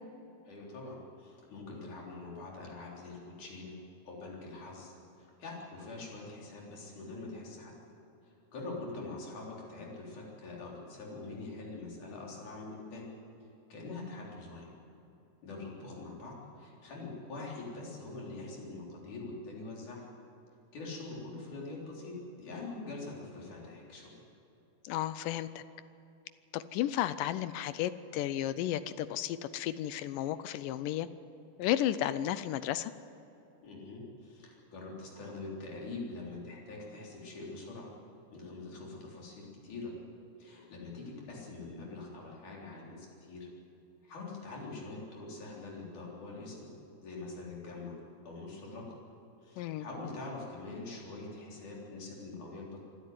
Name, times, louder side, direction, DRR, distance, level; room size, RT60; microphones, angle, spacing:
voice 1, 0.5-3.8 4.1-4.9 5.2-7.7 8.5-13.1 13.7-14.7 15.4-20.1 20.7-24.1 33.6-37.9 38.3-39.9 40.4-43.5 44.0-46.7 47.0-48.0 48.3-49.0 49.4-52.8, left 3 dB, 55° left, -3 dB, 5.3 m, -44 dB
voice 2, 24.8-25.6 26.5-31.1 31.6-32.9 49.6-49.9, left 12 dB, 80° left, 14 dB, 2.1 m, -33 dB
25.5 x 12.0 x 9.5 m, 3.0 s
omnidirectional pair, 4.2 m